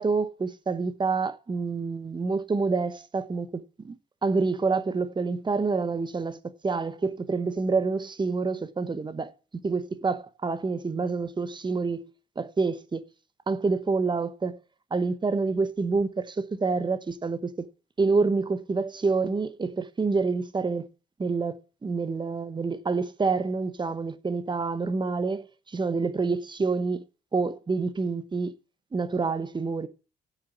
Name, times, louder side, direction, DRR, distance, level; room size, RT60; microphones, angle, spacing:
voice 1, 0.0-4.0 4.2-6.4 6.6-9.3 9.6-12.1 12.4-13.0 13.5-14.6 14.9-17.7 18.0-20.9 21.2-27.0 27.3-28.5 28.9-29.9, right 4 dB, 25° right, 1.0 m, -27 dB
8.0 x 6.7 x 8.4 m
cardioid pair, 85°, 18 cm